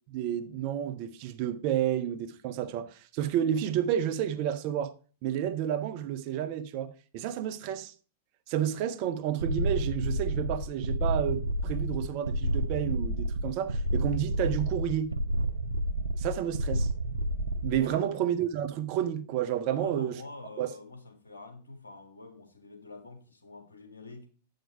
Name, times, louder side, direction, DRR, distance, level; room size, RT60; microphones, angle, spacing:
voice 1, 0.1-4.9 5.2-7.9 8.5-15.1 16.2-16.9 17.6-20.2 20.6-20.7, right 10 dB, 45° right, 0.7 m, -30 dB
sound 1, 9.4-17.8, equal, 85° right, 0.6 m, -30 dB
voice 2, 17.8-18.5 19.7-24.3, left 3 dB, 80° left, 1.8 m, -46 dB
7.8 x 6.6 x 4.5 m
figure-of-eight pair, 95°, 0 cm